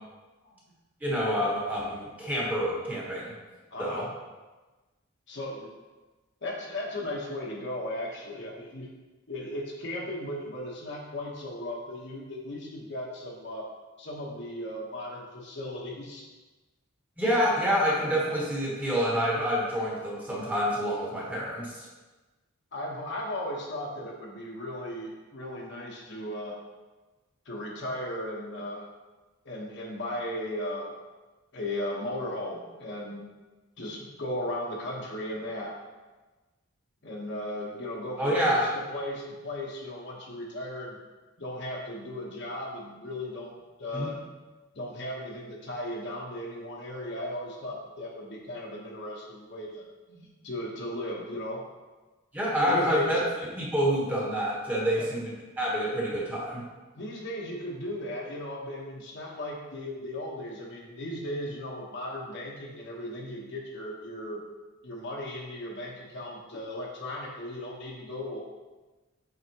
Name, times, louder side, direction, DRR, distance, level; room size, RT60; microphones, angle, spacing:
voice 1, 1.0-3.3 3.8-4.0 17.2-21.9 38.2-38.7 43.9-44.2 52.3-53.2 53.5-56.6, equal, 10° right, -5 dB, 1.2 m, -27 dB
voice 2, 3.7-4.1 5.3-5.7 6.4-8.9 9.3-13.6 14.0-16.3 22.7-26.5 27.4-28.8 29.4-30.9 31.5-33.3 33.8-35.8 37.0-41.0 41.4-43.5 43.8-44.2 44.7-49.8 50.1-51.6 52.7-53.2 54.9-55.1 56.9-64.4 64.8-68.4, left 1 dB, 60° left, -2 dB, 1.1 m, -36 dB
7.9 x 4.1 x 2.9 m, 1.2 s
head